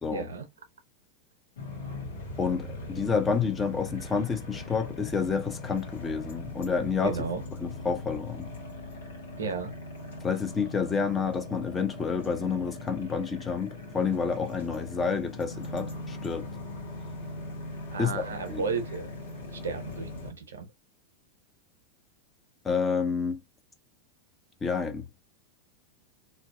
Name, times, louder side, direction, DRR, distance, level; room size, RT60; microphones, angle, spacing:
voice 1, 0.1-0.4 7.0-7.4 9.4-9.7 17.9-19.1 19.5-20.7, right 5 dB, 65° right, 0.6 m, -33 dB
sound 1, 1.6-20.3, left 2 dB, 65° left, 1.0 m, -40 dB
voice 2, 2.4-7.2 7.6-8.4 10.2-16.5 18.0-18.2 18.5-18.6 22.6-23.4 24.6-25.0, left 5 dB, 15° left, 0.5 m, -29 dB
2.6 x 2.2 x 2.2 m
figure-of-eight pair, 90°, 0 cm